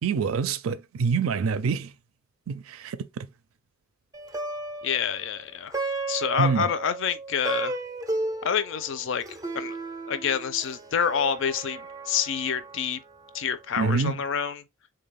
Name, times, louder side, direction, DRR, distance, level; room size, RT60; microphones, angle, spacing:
voice 1, 0.0-1.9 2.5-3.3 6.4-6.7 13.8-14.1, right 5 dB, 70° right, 0.4 m, -26 dB
Plucked string instrument, 4.1-13.6, right 2 dB, 15° right, 0.4 m, -35 dB
voice 2, 4.8-5.8 6.1-7.7 8.4-9.2 9.5-9.8 10.1-13.0 13.3-14.6, left 7 dB, 60° left, 0.5 m, -27 dB
3.8 x 2.2 x 3.3 m
head